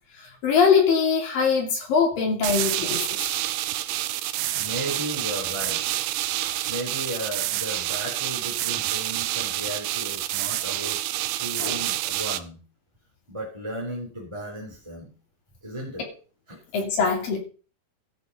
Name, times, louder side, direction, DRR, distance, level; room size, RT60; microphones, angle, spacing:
voice 1, 0.4-3.4 6.5-6.6 11.6-11.8 16.7-17.4, left 6 dB, 55° left, 4.2 m, -22 dB
sound 1, 2.4-12.4, right 15 dB, 80° right, 2.4 m, -28 dB
voice 2, 4.5-6.0 6.2-6.3 6.7-11.0 11.3-12.6 13.3-15.1 15.6-16.1 16.5-16.6, right 1 dB, 5° right, 3.0 m, -35 dB
14.5 x 6.7 x 5.5 m
omnidirectional pair, 5.0 m